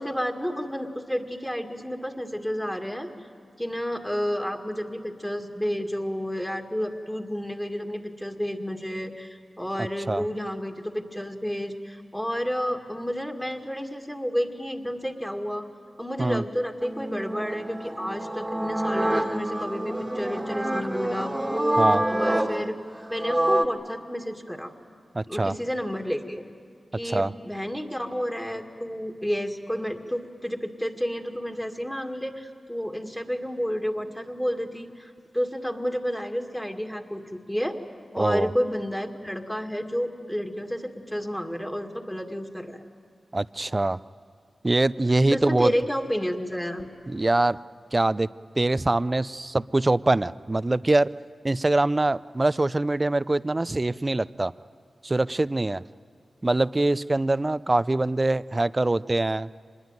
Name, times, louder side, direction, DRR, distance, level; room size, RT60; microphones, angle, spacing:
voice 1, 0.0-3.1 3.6-15.6 16.0-21.5 22.1-22.8 23.1-24.7 25.3-26.4 26.9-37.8 38.1-42.8 45.3-46.9, equal, 10° left, 3 dB, 2.2 m, -30 dB
sound 1, 16.8-23.7, right 1 dB, 15° right, 1.8 m, -27 dB
voice 2, 25.1-25.5 27.0-27.3 38.2-38.5 43.3-44.0 44.6-45.7 47.1-47.6 47.9-48.3 48.6-51.1 51.4-54.5 55.0-55.8 56.4-59.5, right 2 dB, 30° right, 17 dB, 0.5 m, -23 dB
25.0 x 21.0 x 9.2 m, 2.3 s
cardioid pair, 60°, 0 cm